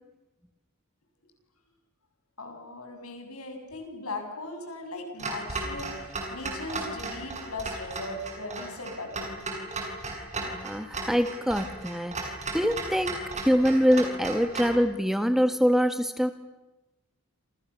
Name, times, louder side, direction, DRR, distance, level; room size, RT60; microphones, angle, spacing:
voice 1, 2.4-9.4, left 2 dB, 70° left, 4 dB, 7.3 m, -39 dB
Clock, 5.2-14.8, right 2 dB, 30° right, 7.2 m, -35 dB
voice 2, 10.3-16.3, equal, ahead, 8 dB, 1.6 m, -25 dB
29.0 x 28.5 x 7.1 m, 0.99 s
head